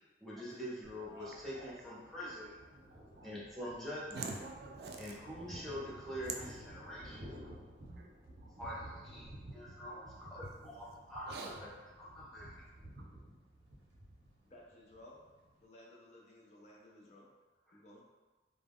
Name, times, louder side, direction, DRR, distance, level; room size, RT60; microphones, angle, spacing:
voice 1, 0.2-2.5 3.2-4.3 5.0-6.5 6.7-7.2 8.6-11.3 12.0-12.6, equal, ahead, -8 dB, 0.6 m, -44 dB
Thunder, 0.8-15.6, right 1 dB, 90° right, 0.7 m, -53 dB
voice 2, 1.0-2.1 2.7-6.8 7.3-7.4 7.7-9.2 9.5-9.6 10.1-10.5 11.1-11.7 12.1-12.7 13.0-13.1, right 4 dB, 60° right, 2 dB, 0.3 m, -50 dB
voice 3, 14.4-15.3 15.6-17.3 17.7-18.1, left 1 dB, 40° left, -2 dB, 0.4 m, -57 dB
2.2 x 2.0 x 3.5 m, 1.3 s
head